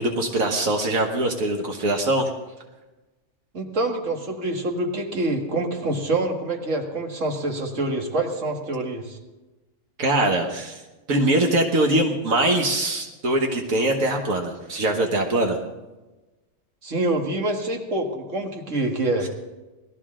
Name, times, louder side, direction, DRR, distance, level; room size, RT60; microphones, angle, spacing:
voice 1, 0.0-2.3 10.0-10.8 11.1-15.6 19.2-19.3, right 1 dB, 90° right, 2 dB, 1.8 m, -22 dB
voice 2, 3.5-9.2 16.8-19.3, right 2 dB, 65° right, 3 dB, 2.0 m, -26 dB
19.5 x 13.5 x 3.7 m, 1.1 s
omnidirectional pair, 1.4 m